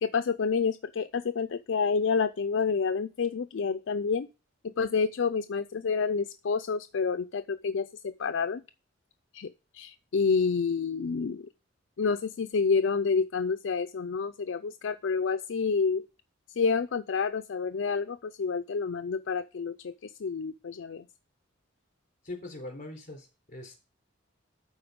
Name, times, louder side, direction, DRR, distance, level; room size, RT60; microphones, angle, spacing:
voice 1, 0.0-4.3 4.6-8.6 9.3-11.5 12.0-16.0 16.6-21.0, left 5 dB, 70° left, 9 dB, 0.4 m, -29 dB
voice 2, 22.2-23.7, left 2 dB, 40° left, 2 dB, 3.9 m, -41 dB
11.5 x 4.3 x 5.2 m, 0.31 s
head